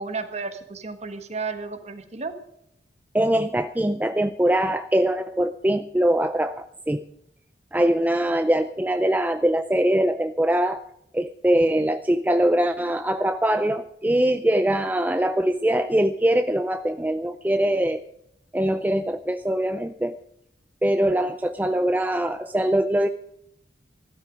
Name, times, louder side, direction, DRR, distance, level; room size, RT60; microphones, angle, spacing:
voice 1, 0.0-2.3, right 4 dB, 35° right, 8 dB, 1.5 m, -32 dB
voice 2, 3.1-7.0 7.7-10.8 11.1-18.0 18.5-20.2 20.8-23.1, right 1 dB, 10° right, 9 dB, 0.4 m, -22 dB
15.5 x 13.0 x 5.1 m, 0.77 s
head